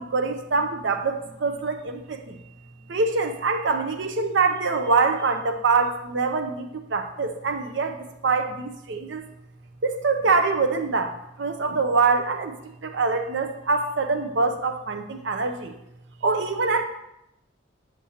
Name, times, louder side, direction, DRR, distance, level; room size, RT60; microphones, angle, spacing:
voice 1, 0.0-2.4 2.9-9.2 9.8-12.6 12.8-15.7 16.2-16.8, right 4 dB, 60° right, 7 dB, 0.5 m, -24 dB
8.6 x 7.2 x 2.8 m, 0.83 s
head